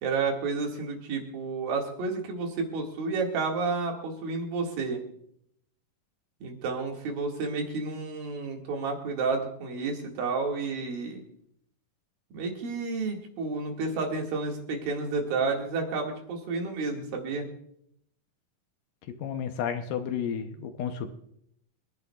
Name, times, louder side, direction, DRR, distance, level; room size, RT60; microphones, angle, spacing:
voice 1, 0.0-5.0 6.4-11.2 12.3-17.5, right 4 dB, 80° right, 1 dB, 3.8 m, -31 dB
voice 2, 19.2-21.1, left 8 dB, 75° left, 7 dB, 2.3 m, -32 dB
27.5 x 11.0 x 2.4 m, 0.72 s
omnidirectional pair, 4.1 m